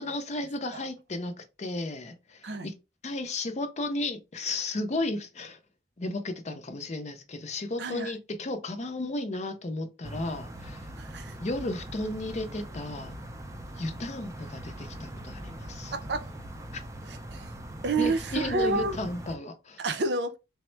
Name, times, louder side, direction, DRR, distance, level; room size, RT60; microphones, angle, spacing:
voice 1, 0.0-2.7 3.0-5.6 6.0-10.9 11.4-13.2 13.8-15.9 16.7-16.8 18.0-19.8, left 2 dB, 40° left, 0.5 m, -34 dB
voice 2, 7.8-8.1 11.0-11.3 15.9-16.3 17.1-17.5 17.8-19.0 19.8-20.4, right 3 dB, 65° right, 0.6 m, -29 dB
sound 1, 10.0-19.4, right 1 dB, 15° right, 0.4 m, -41 dB
3.5 x 2.1 x 4.3 m
head